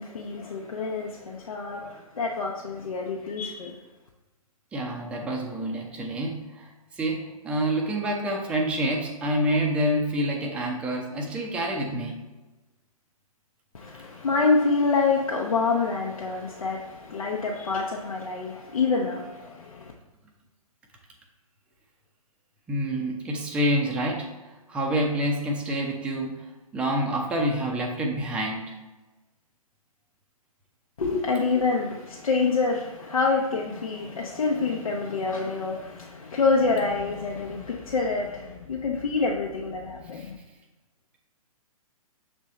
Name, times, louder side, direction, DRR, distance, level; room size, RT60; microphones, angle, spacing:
voice 1, 0.0-3.8 13.7-19.9 31.0-40.4, left 4 dB, 70° left, -1 dB, 0.8 m, -27 dB
voice 2, 4.7-6.7 7.0-12.2 22.7-28.8 40.1-40.3, right 1 dB, 5° right, 0 dB, 0.5 m, -27 dB
6.4 x 3.6 x 4.1 m, 1.2 s
figure-of-eight pair, 125°, 19 cm